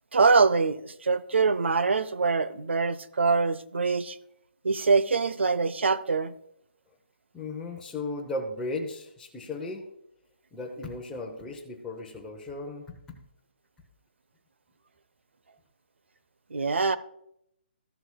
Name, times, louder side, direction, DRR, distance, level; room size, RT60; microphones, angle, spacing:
voice 1, 0.1-4.2 4.6-6.3 16.5-17.0, right 4 dB, 85° right, 0.7 m, -24 dB
voice 2, 7.3-9.8 10.5-13.2, left 2 dB, 5° left, 0.8 m, -36 dB
14.0 x 7.8 x 2.3 m
hypercardioid pair, 160°, 6 cm